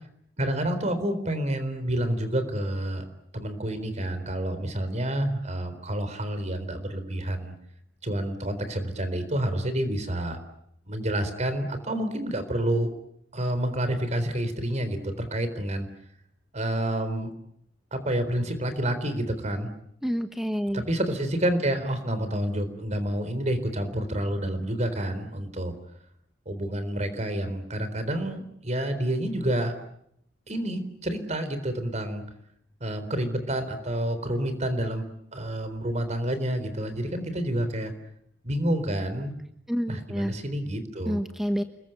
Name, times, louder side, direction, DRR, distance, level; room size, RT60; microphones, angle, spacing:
voice 1, 0.4-3.0 3.3-7.5 8.0-10.4 10.9-12.9 13.3-15.9 16.5-17.3 17.9-19.7 20.7-25.7 26.5-29.7 30.5-32.2 32.8-37.9 38.4-39.4 39.9-41.2, right 1 dB, 40° right, 10 dB, 4.0 m, -29 dB
voice 2, 20.0-20.8 39.7-40.3 41.1-41.6, equal, ahead, 7 dB, 1.1 m, -28 dB
29.0 x 21.5 x 9.1 m, 0.72 s
head